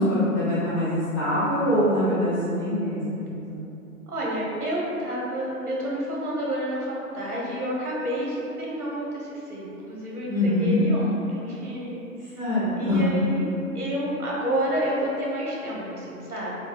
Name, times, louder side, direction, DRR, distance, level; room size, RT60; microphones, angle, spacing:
voice 1, 0.0-3.6 10.3-10.8 12.4-13.0, left 1 dB, 15° left, -14 dB, 0.4 m, -24 dB
voice 2, 4.1-12.0 12.3-12.4 12.8-13.5 13.7-16.6, equal, 85° right, -5 dB, 0.8 m, -29 dB
3.2 x 2.0 x 2.4 m, 2.8 s
figure-of-eight pair, 120°, 44 cm